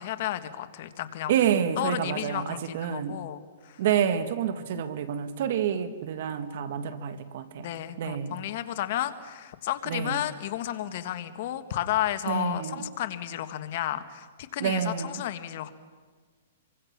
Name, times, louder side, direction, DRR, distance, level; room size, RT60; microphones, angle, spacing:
voice 1, 0.0-1.3 1.8-3.8 4.6-4.8 7.6-15.7, left 12 dB, 50° left, 10 dB, 1.6 m, -32 dB
voice 2, 1.3-3.2 3.8-7.7 8.0-8.4 9.9-10.2 12.3-12.9 14.6-15.2, right 8 dB, 60° right, 10 dB, 1.9 m, -28 dB
27.5 x 24.0 x 6.0 m, 1.5 s
hypercardioid pair, 150°, 0 cm